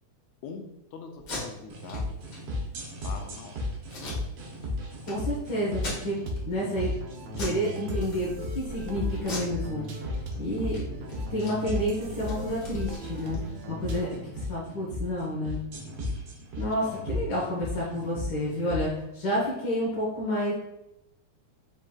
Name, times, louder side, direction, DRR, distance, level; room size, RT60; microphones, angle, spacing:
voice 1, 0.4-2.2 3.0-3.6 16.9-17.0, left 5 dB, 80° left, 4 dB, 1.8 m, -42 dB
Packing tape duct tape, 1.1-1.4 1.9-2.0 2.3-2.4 2.8-3.2 3.9-4.7 5.0-5.1 5.7-6.4 6.8-7.0 7.3-7.6 7.9-8.6 9.2-10.3 10.6-10.8 11.1-13.7, left 1 dB, 50° left, 1.4 m, -40 dB
sound 1, 1.7-18.9, left 2 dB, 65° right, 1.7 m, -35 dB
voice 2, 5.0-6.1 6.5-6.9 7.4-8.3 8.5-9.9 10.4-10.9 11.3-13.4 13.7-15.6 16.6-20.5, equal, 65° left, -5 dB, 1.1 m, -30 dB
sound 2, 6.3-14.4, right 1 dB, 85° right, 1.2 m, -39 dB
5.1 x 3.6 x 2.3 m, 0.86 s
omnidirectional pair, 3.3 m